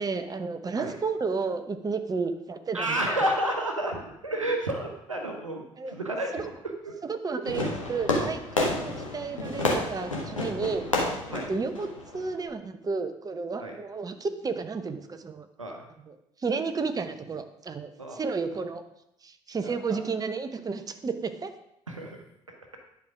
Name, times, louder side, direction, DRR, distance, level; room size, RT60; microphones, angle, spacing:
voice 1, 0.0-3.3 5.8-6.0 6.3-6.5 7.0-10.9 11.3-11.9 12.1-15.5 16.0-18.8 19.2-21.5, right 4 dB, 25° right, 9 dB, 0.8 m, -32 dB
voice 2, 2.7-6.5 6.8-6.9 11.3-11.5 13.6-13.8 15.6-15.8 18.0-18.2 19.6-20.0 21.9-22.2 22.5-22.8, right 1 dB, 85° right, 3 dB, 0.9 m, -31 dB
Fireworks, 7.4-12.5, left 2 dB, 85° left, 1.2 m, -30 dB
10.5 x 4.6 x 5.0 m, 0.82 s
figure-of-eight pair, 50°, 16 cm